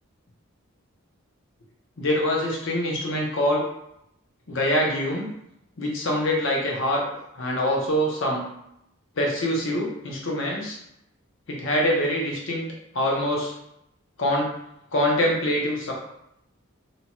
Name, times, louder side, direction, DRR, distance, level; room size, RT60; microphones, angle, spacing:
voice 1, 2.0-3.6 4.5-5.3 5.8-7.0 7.3-8.4 9.2-10.8 11.5-12.6 12.9-13.5 14.2-14.5 14.9-15.9, equal, 60° left, -2 dB, 0.7 m, -24 dB
2.8 x 2.3 x 2.9 m, 0.80 s
head